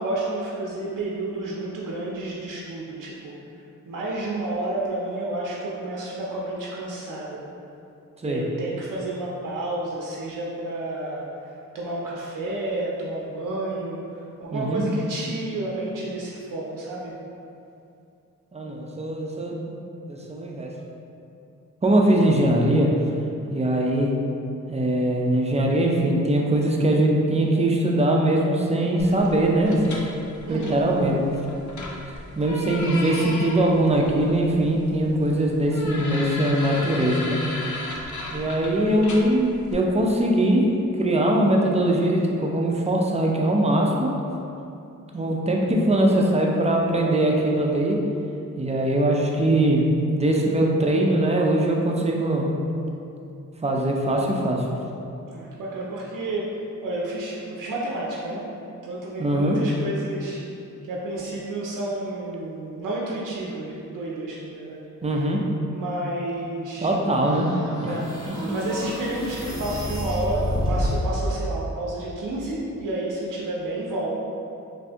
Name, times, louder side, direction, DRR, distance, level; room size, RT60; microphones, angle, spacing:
voice 1, 0.0-3.3 3.9-7.4 8.2-14.0 14.4-17.1 30.5-30.8 55.3-58.4 58.8-60.4 60.8-64.8 65.7-66.9 67.9-68.1 68.5-74.1, right 2 dB, 80° right, -5 dB, 0.5 m, -30 dB
voice 2, 14.5-14.8 18.5-19.8 20.1-20.8 21.8-22.9 23.5-24.1 24.7-30.1 30.5-31.2 32.3-37.4 38.3-40.7 40.9-44.1 45.1-48.0 48.6-49.9 50.1-52.5 53.6-54.6 59.2-59.6 65.0-65.4 66.8-67.5 68.3-68.4, right 1 dB, 20° right, -1 dB, 0.3 m, -21 dB
sound 1, 29.0-39.7, left 2 dB, 65° left, 0.5 m, -36 dB
sound 2, 67.2-71.2, equal, 10° left, 0.8 m, -29 dB
2.6 x 2.5 x 3.3 m, 2.6 s
wide cardioid pair, 95°, 31 cm